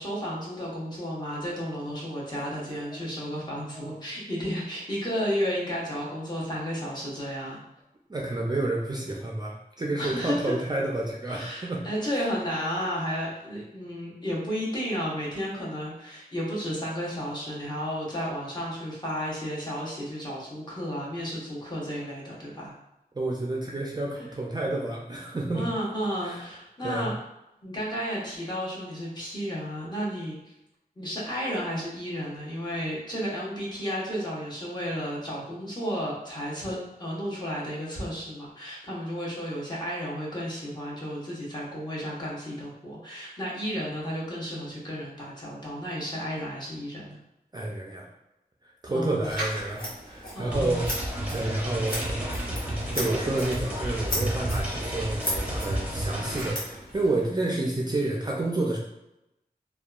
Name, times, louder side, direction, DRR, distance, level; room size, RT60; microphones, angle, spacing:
voice 1, 0.0-7.6 10.0-10.5 11.3-22.7 25.5-27.1 27.6-30.4 31.0-47.2 48.9-49.4 50.3-50.8, equal, 25° left, -6 dB, 0.9 m, -32 dB
voice 2, 8.1-11.8 12.1-12.3 23.1-25.6 26.2-26.5 26.8-27.1 47.5-48.1 48.6-50.9 51.3-52.6 52.9-58.8, right 2 dB, 25° right, -2 dB, 0.4 m, -30 dB
Scissors, 49.2-57.3, equal, 70° left, 1.1 m, -36 dB
sound 1, 50.5-56.5, right 1 dB, 10° right, 0.8 m, -31 dB
2.7 x 2.2 x 2.3 m, 0.89 s
wide cardioid pair, 70°, 16 cm